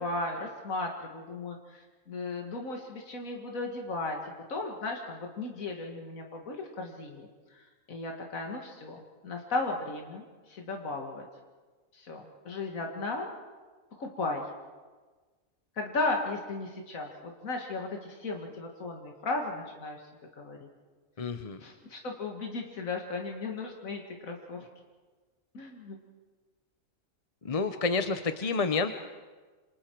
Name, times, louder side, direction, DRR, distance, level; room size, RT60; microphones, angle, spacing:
voice 1, 0.0-11.3 11.9-13.3 14.0-14.4 15.8-20.0 20.4-20.7 21.6-24.7 25.5-26.0, left 3 dB, 90° left, 2 dB, 2.2 m, -36 dB
voice 2, 21.2-21.6 27.4-28.9, left 4 dB, 35° left, 8 dB, 0.7 m, -29 dB
27.5 x 27.0 x 4.6 m, 1.3 s
omnidirectional pair, 1.4 m